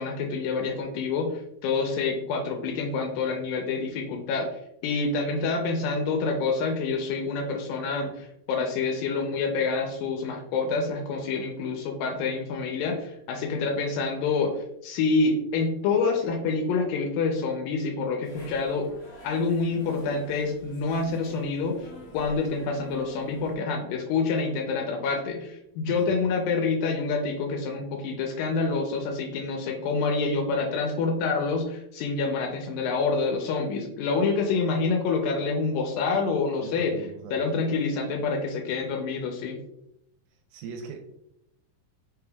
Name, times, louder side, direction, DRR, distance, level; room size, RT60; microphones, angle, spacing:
voice 1, 0.0-4.5 4.8-18.9 19.2-21.9 22.1-39.6, left 4 dB, 80° left, 2 dB, 2.2 m, -27 dB
sound 1, 18.2-23.5, left 1 dB, 55° left, 1.0 m, -46 dB
voice 2, 36.6-37.4 40.5-41.0, right 5 dB, 85° right, 3 dB, 2.3 m, -40 dB
5.2 x 3.4 x 2.2 m, 0.79 s
omnidirectional pair, 4.1 m